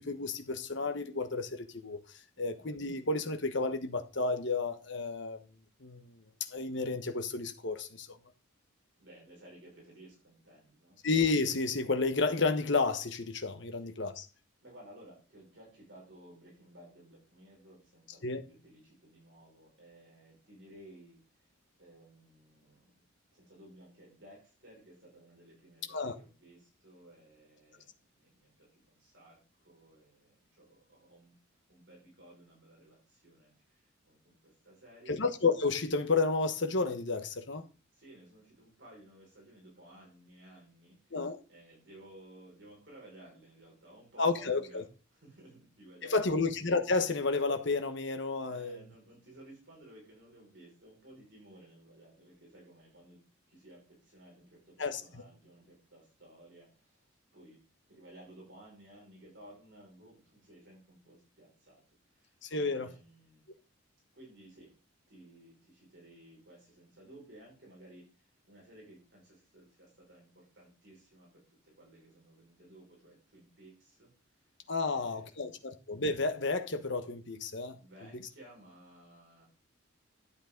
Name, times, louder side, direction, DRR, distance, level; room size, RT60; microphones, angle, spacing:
voice 1, 0.0-2.0 2.4-5.4 5.8-6.2 6.5-8.1 11.0-14.3 18.2-18.4 25.9-26.1 35.1-37.7 41.1-41.4 44.2-44.8 46.0-48.8 54.8-55.0 62.4-62.9 74.7-77.8, left 3 dB, 60° left, 1.2 m, -31 dB
voice 2, 9.0-11.0 13.8-13.9 14.6-22.9 23.3-31.3 31.7-35.2 37.9-46.4 48.5-53.2 53.5-57.6 57.9-63.4 64.1-64.8 65.1-74.5 74.8-75.6 77.8-79.5, right 1 dB, 60° right, 5.8 m, -57 dB
12.0 x 8.1 x 3.9 m
head